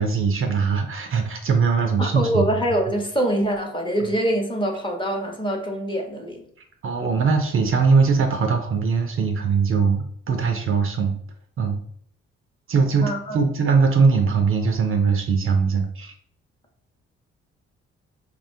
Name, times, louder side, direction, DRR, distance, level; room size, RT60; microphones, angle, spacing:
voice 1, 0.0-2.5 4.0-4.1 6.8-11.2 11.6-11.8 12.7-16.1, right 5 dB, 45° right, 4 dB, 0.5 m, -21 dB
voice 2, 2.0-6.5 13.0-13.4, right 1 dB, 15° left, 1 dB, 0.8 m, -24 dB
2.9 x 2.1 x 2.7 m, 0.63 s
hypercardioid pair, 45°, 29 cm